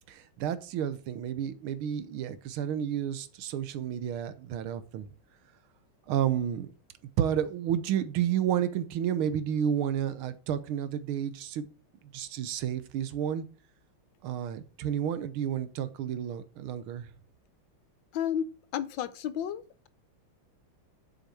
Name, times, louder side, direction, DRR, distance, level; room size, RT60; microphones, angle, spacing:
voice 1, 0.1-5.1 6.1-6.7 7.2-11.7 12.0-13.5 14.2-17.1, right 9 dB, 85° right, 1.7 m, -31 dB
voice 2, 18.1-19.9, left 9 dB, 70° left, 1.3 m, -33 dB
7.9 x 6.6 x 4.7 m
omnidirectional pair, 2.3 m